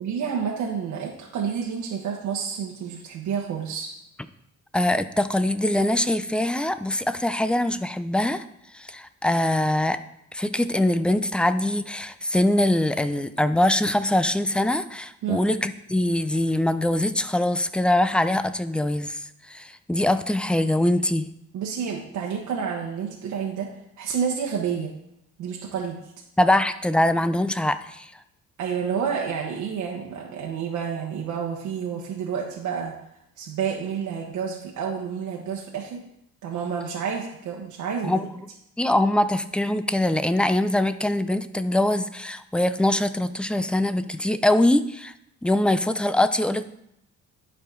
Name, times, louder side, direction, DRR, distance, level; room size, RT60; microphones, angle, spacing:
voice 1, 0.0-3.9 15.2-15.4 21.5-24.9 25.4-26.0 28.6-32.9 33.4-36.0 36.4-38.3, right 7 dB, 80° right, -1 dB, 1.2 m, -29 dB
voice 2, 4.7-8.4 8.7-10.0 10.3-21.3 26.4-28.1 38.0-38.2 38.8-45.1 45.4-46.6, left 1 dB, 5° left, 12 dB, 0.4 m, -23 dB
11.5 x 4.9 x 3.8 m, 0.79 s
cardioid pair, 90°, 30 cm